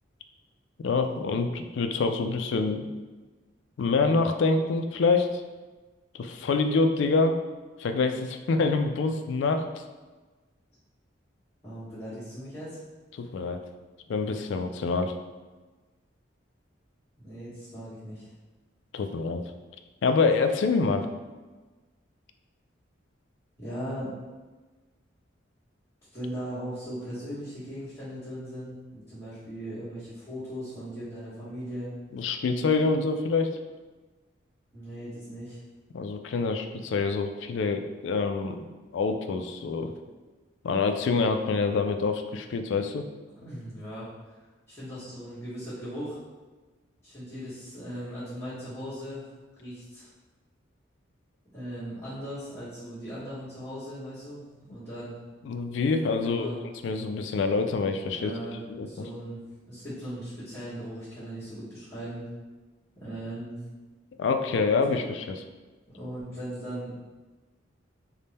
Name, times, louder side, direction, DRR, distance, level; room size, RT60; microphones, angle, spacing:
voice 1, 0.8-2.9 3.8-5.4 6.1-7.3 7.8-9.8 13.1-13.6 14.1-15.2 18.9-19.4 20.0-21.1 32.1-33.5 35.9-38.6 38.9-39.9 40.6-43.1 55.4-56.5 56.8-58.3 58.7-58.9 64.2-65.4, left 4 dB, 70° left, 7 dB, 0.3 m, -26 dB
voice 2, 11.6-12.8 17.2-18.3 23.6-24.2 26.1-31.9 34.7-35.6 43.3-44.1 44.7-46.2 47.0-49.2 49.6-50.1 51.5-54.4 54.7-55.2 56.2-56.6 58.1-59.4 59.7-62.2 62.9-63.6 65.9-67.0, equal, 15° left, -16 dB, 1.2 m, -38 dB
3.4 x 2.1 x 4.1 m, 1.3 s
head